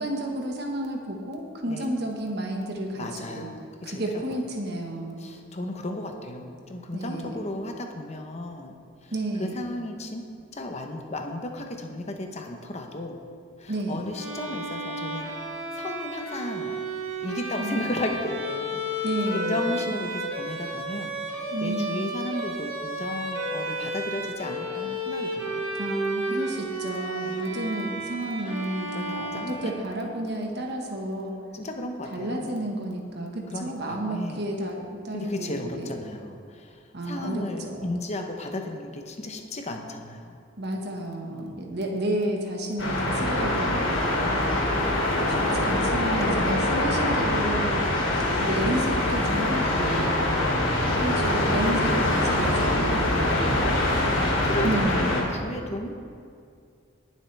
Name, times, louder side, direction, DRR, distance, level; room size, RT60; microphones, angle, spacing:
voice 1, 0.0-3.5 3.8-5.2 6.9-7.4 9.1-9.6 13.7-14.0 17.6-17.9 19.0-19.6 21.5-22.1 25.8-31.4 32.1-35.9 36.9-37.9 40.6-44.6 45.3-47.9 48.4-50.1 50.9-53.5 54.3-55.2, right 1 dB, 55° right, 1 dB, 1.6 m, -31 dB
voice 2, 3.0-4.0 4.3-4.4 5.2-8.8 9.0-9.1 9.4-10.2 10.5-13.2 13.6-15.3 15.7-16.8 17.2-19.1 19.3-25.6 27.2-27.4 28.9-29.7 31.5-32.5 33.5-34.4 35.1-40.4 41.2-41.7 53.1-53.9 54.1-55.9, left 1 dB, 35° left, 4 dB, 1.0 m, -35 dB
Bowed string instrument, 14.1-30.1, right 1 dB, 90° right, 2.2 m, -32 dB
sound 1, 42.8-55.2, left 1 dB, 70° left, 2.9 m, -24 dB
20.5 x 7.4 x 3.5 m, 2.3 s
head